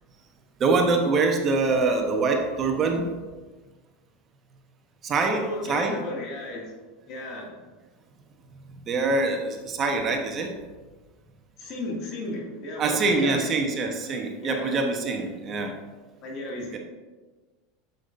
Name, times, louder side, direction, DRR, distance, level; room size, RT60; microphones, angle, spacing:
voice 1, 0.6-3.1 5.0-6.0 8.9-10.5 12.8-15.7 16.7-16.8, right 3 dB, 35° right, 4 dB, 1.1 m, -24 dB
voice 2, 5.3-6.7 7.1-7.5 11.6-13.5 14.4-14.7 16.2-16.8, left 1 dB, 50° left, -1 dB, 2.3 m, -34 dB
8.1 x 6.9 x 2.7 m, 1.3 s
hypercardioid pair, 95°, 0 cm